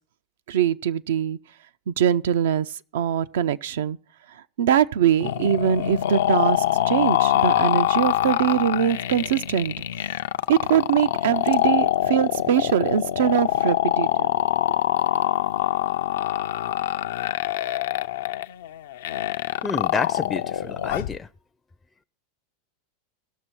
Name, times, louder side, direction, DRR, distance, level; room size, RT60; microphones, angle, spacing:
voice 1, 0.5-1.4 1.9-4.0 4.3-9.7 10.5-14.3, right 9 dB, 80° right, 0.4 m, -22 dB
sound 1, 5.2-21.2, left 12 dB, 80° left, 0.4 m, -24 dB
voice 2, 19.6-21.3, left 5 dB, 15° left, 0.4 m, -29 dB
18.5 x 6.2 x 4.4 m
hypercardioid pair, 115°, 0 cm